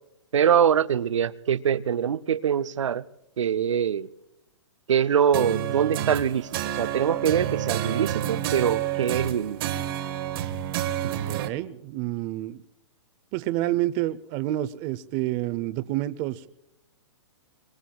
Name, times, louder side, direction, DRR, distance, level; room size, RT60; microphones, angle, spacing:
voice 1, 0.3-3.1 3.4-4.1 4.9-9.6 11.0-11.1, right 8 dB, 85° right, 0.6 m, -24 dB
sound 1, 5.3-11.5, right 11 dB, 50° right, 1.0 m, -29 dB
voice 2, 11.3-12.6 13.3-16.5, right 15 dB, 30° right, 0.6 m, -28 dB
25.5 x 24.0 x 2.3 m
hypercardioid pair, 145°, 16 cm